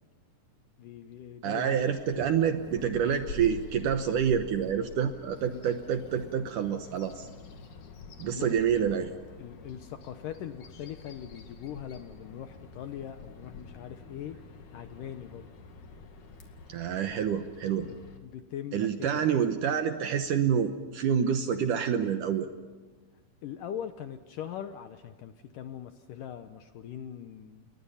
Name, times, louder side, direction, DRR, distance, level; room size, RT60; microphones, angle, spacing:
voice 1, 0.8-1.9 2.1-2.4 5.5-5.6 8.2-8.5 9.4-14.4 14.7-15.5 17.7-19.2 19.5-19.6 23.4-27.7, left 10 dB, 75° left, 9 dB, 2.1 m, -41 dB
voice 2, 1.4-7.3 8.2-9.1 16.7-17.9 18.7-22.5, right 8 dB, 70° right, 7 dB, 2.1 m, -27 dB
Bird vocalization bird call bird song, 1.8-18.2, left 4 dB, 55° left, 3.3 m, -47 dB
29.0 x 22.5 x 5.7 m, 1.4 s
omnidirectional pair, 4.7 m